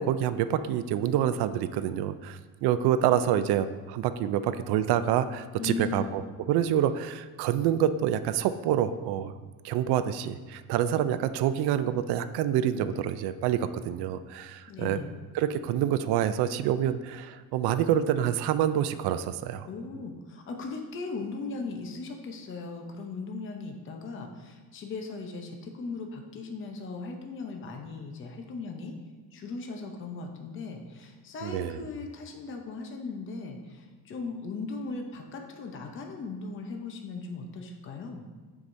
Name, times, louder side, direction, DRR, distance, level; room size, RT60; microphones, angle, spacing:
voice 1, 0.0-6.2 6.5-9.3 9.6-13.6 13.9-15.0 15.3-19.7 31.4-31.8, right 10 dB, 80° right, 11 dB, 0.5 m, -27 dB
voice 2, 5.6-6.2 14.7-15.1 19.6-28.9 29.3-38.3, left 4 dB, 30° left, 3 dB, 0.7 m, -38 dB
14.0 x 4.8 x 2.6 m, 1.3 s
cardioid pair, 155°, 38 cm